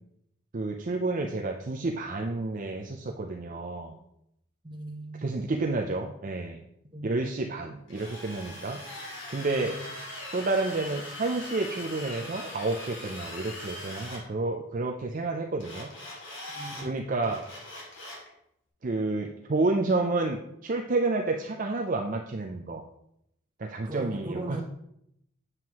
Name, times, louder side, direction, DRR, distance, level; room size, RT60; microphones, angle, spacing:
voice 1, 0.5-4.0 5.2-6.6 7.0-8.8 9.3-9.8 10.3-15.9 16.8-17.5 18.8-22.8 23.6-24.6, right 3 dB, 40° right, 2 dB, 0.5 m, -30 dB
voice 2, 4.6-5.3 6.9-7.4 9.6-9.8 16.5-17.1 23.8-24.6, right 2 dB, 20° right, 3 dB, 0.9 m, -39 dB
Drill, 7.9-14.2 15.6-16.8 17.2-18.3, left 1 dB, 65° left, 2.5 m, -41 dB
7.9 x 7.3 x 2.9 m, 0.77 s
head